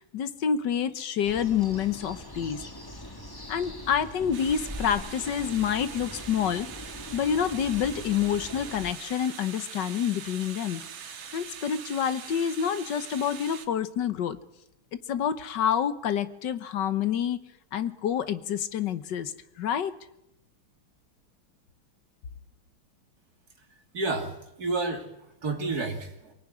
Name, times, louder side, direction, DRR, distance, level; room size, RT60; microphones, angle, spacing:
voice 1, 0.0-2.6 3.5-6.7 7.1-10.8 11.1-14.4 15.1-17.4 17.7-19.3 19.6-19.9, left 8 dB, 60° left, 13 dB, 1.6 m, -28 dB
sound 1, 1.2-8.9, left 1 dB, 10° left, 1.9 m, -42 dB
sound 2, 4.3-13.7, right 7 dB, 75° right, 2.2 m, -43 dB
voice 2, 23.9-25.1 25.4-26.3, right 3 dB, 45° right, 4 dB, 3.5 m, -30 dB
24.0 x 18.0 x 9.7 m, 0.87 s
omnidirectional pair, 2.2 m